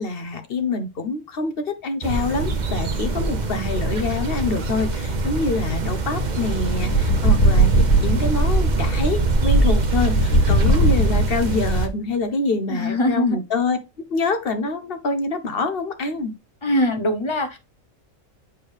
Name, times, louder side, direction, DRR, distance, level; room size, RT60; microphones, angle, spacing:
voice 1, 0.0-7.7 8.0-13.8 14.1-16.3, left 3 dB, 50° left, 1.0 m, -25 dB
sound 1, 2.0-11.9, right 2 dB, 40° right, 0.9 m, -23 dB
sound 2, 6.7-8.3 9.8-11.7, right 1 dB, 80° left, 2.3 m, -18 dB
voice 2, 12.7-13.4 16.6-17.6, left 1 dB, 25° left, 0.8 m, -22 dB
7.1 x 4.5 x 3.3 m
omnidirectional pair, 1.4 m